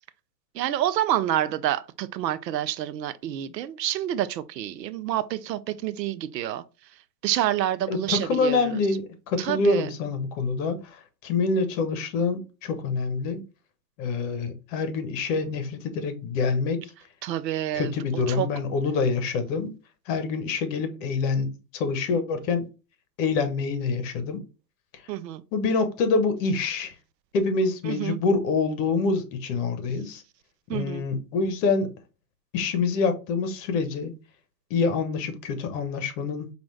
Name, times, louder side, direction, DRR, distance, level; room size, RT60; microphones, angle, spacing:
voice 1, 0.5-6.6 7.2-8.8 9.4-9.9 17.2-18.5 25.1-25.4 27.8-28.2 30.7-31.0, right 12 dB, 80° right, 0.6 m, -28 dB
voice 2, 7.9-13.4 14.0-16.8 17.7-19.7 20.1-22.6 23.2-24.4 24.9-25.0 25.5-27.0 27.3-30.2 30.7-31.9 32.5-34.1 34.7-36.5, left 4 dB, 50° left, 1.1 m, -26 dB
4.9 x 2.6 x 3.2 m
hypercardioid pair, 115°, 50 cm